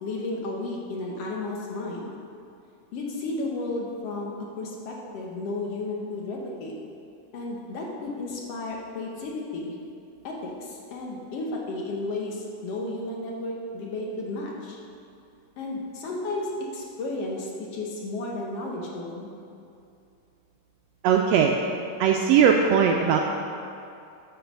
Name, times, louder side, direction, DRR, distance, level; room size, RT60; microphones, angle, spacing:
voice 1, 0.0-2.1 2.9-6.7 7.3-9.8 10.2-14.8 15.6-19.3, left 2 dB, 65° left, -1 dB, 1.8 m, -33 dB
voice 2, 21.0-21.5 22.0-23.2, right 7 dB, 80° right, 2 dB, 1.5 m, -19 dB
9.3 x 5.4 x 6.0 m, 2.6 s
omnidirectional pair, 3.4 m